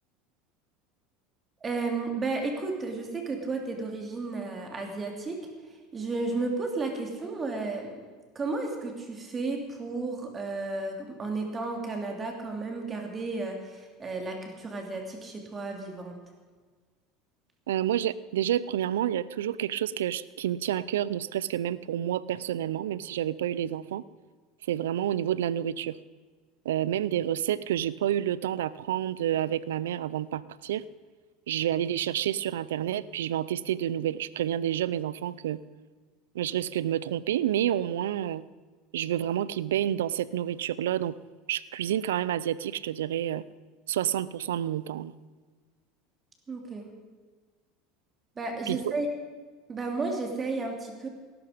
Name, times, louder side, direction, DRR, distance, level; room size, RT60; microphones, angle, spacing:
voice 1, 1.6-7.9 8.3-16.2 46.5-46.9 48.4-49.1 49.7-51.1, right 3 dB, 25° right, 2 dB, 2.9 m, -33 dB
voice 2, 17.7-24.0 24.7-26.0 26.6-30.8 31.5-35.6 36.3-38.4 38.9-41.1 41.5-43.4 43.9-45.1 48.7-48.8, right 11 dB, 90° right, 19 dB, 0.5 m, -29 dB
18.5 x 12.0 x 5.1 m, 1.4 s
supercardioid pair, 100°, 0 cm